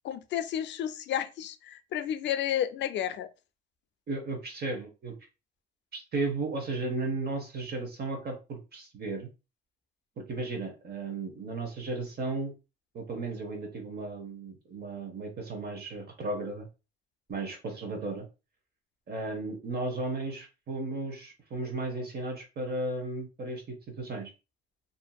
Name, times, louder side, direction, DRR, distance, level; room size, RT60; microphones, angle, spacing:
voice 1, 0.0-3.3, left 10 dB, 65° left, 0.4 m, -31 dB
voice 2, 4.1-5.1 5.9-9.3 10.2-12.5 12.9-16.7 17.3-18.3 19.1-24.3, right 2 dB, 55° right, 0.9 m, -35 dB
2.6 x 2.5 x 2.2 m
cardioid pair, 90°, 20 cm